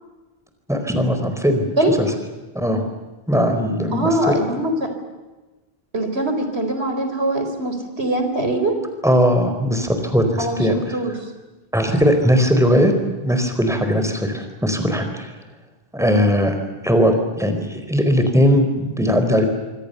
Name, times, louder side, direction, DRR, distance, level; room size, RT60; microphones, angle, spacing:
voice 1, 0.7-2.1 2.5-2.8 3.3-4.4 9.0-11.0 11.7-12.9 13.2-15.3 15.9-16.6 16.8-19.4, equal, 5° right, 6 dB, 4.4 m, -19 dB
voice 2, 3.9-4.9 5.9-8.7 10.4-11.1, right 1 dB, 85° right, 6 dB, 4.7 m, -22 dB
26.5 x 25.0 x 6.9 m, 1.2 s
omnidirectional pair, 1.1 m